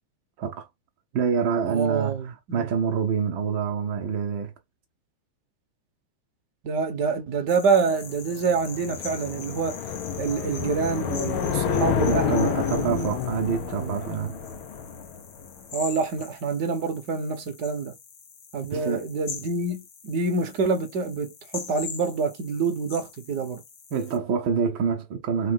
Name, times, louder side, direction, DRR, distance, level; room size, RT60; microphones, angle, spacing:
voice 1, 0.4-0.7 1.1-4.5 12.1-14.4 18.7-19.1 23.9-25.5, right 6 dB, 90° right, 1.0 m, -26 dB
voice 2, 1.6-2.7 6.6-9.8 10.2-13.1 13.8-13.9 15.7-17.9 18.5-23.6, right 4 dB, 60° right, 1.1 m, -27 dB
sound 1, 7.5-24.2, left 7 dB, 85° left, 0.9 m, -43 dB
sound 2, 8.1-15.5, left 7 dB, 65° left, 1.3 m, -29 dB
4.4 x 4.2 x 5.4 m
omnidirectional pair, 3.6 m